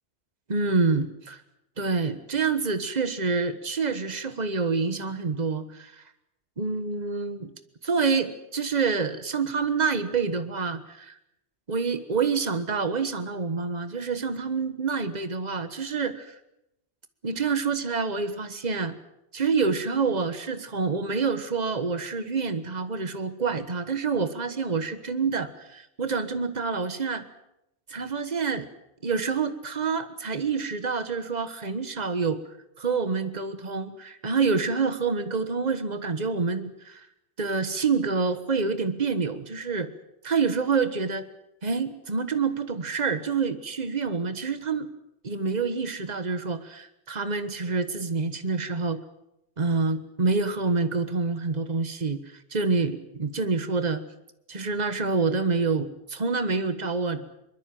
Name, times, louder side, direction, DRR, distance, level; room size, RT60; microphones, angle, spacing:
voice 1, 0.5-1.4 1.8-6.0 6.6-7.5 7.8-11.1 11.7-16.3 17.2-19.0 19.3-27.2 27.9-28.7 29.0-32.4 32.8-37.1 37.4-39.9 40.2-41.2 41.6-44.9 45.2-49.0 49.6-52.2 52.5-54.0 54.5-57.2, right 4 dB, 40° right, 11 dB, 1.5 m, -27 dB
23.0 x 21.0 x 7.7 m, 0.83 s
omnidirectional pair, 1.1 m